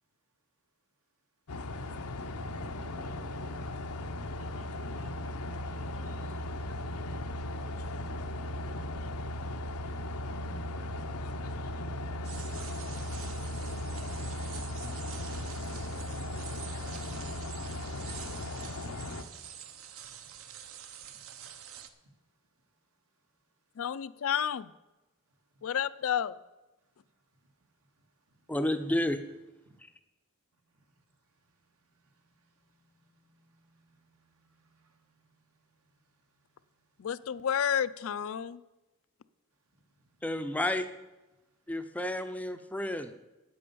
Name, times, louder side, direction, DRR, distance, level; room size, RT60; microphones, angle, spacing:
sound 1, 1.5-19.2, left 1 dB, 90° left, 0.8 m, -37 dB
voice 1, 2.3-3.9 4.2-8.0 19.5-19.6 25.5-25.6 27.6-28.5 29.7-29.8 30.7-37.1 39.7-40.0, right 1 dB, 80° right, 4 dB, 1.9 m, -63 dB
sound 2, 12.2-21.9, right 9 dB, 65° right, 0.8 m, -47 dB
voice 2, 23.8-24.7 25.6-26.3 37.0-38.6, left 8 dB, 65° left, 16 dB, 0.4 m, -31 dB
voice 3, 28.5-29.2 40.2-40.9 41.7-43.1, left 1 dB, 5° left, 9 dB, 0.5 m, -31 dB
9.4 x 8.7 x 6.9 m, 1.0 s
head